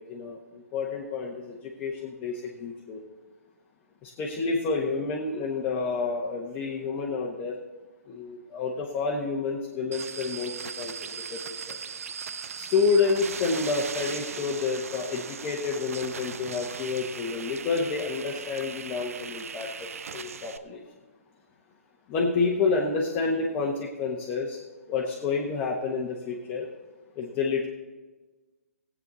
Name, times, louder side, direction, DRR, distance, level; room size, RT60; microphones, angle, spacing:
voice 1, 0.0-3.0 4.0-7.5 8.1-11.8 12.5-20.8 22.1-24.6 24.9-26.7 27.2-27.7, left 4 dB, 25° left, -3 dB, 1.3 m, -29 dB
sound 1, 9.9-20.6, right 6 dB, 65° right, 0.7 m, -38 dB
16.0 x 8.6 x 4.1 m, 1.2 s
hypercardioid pair, 140°, 8 cm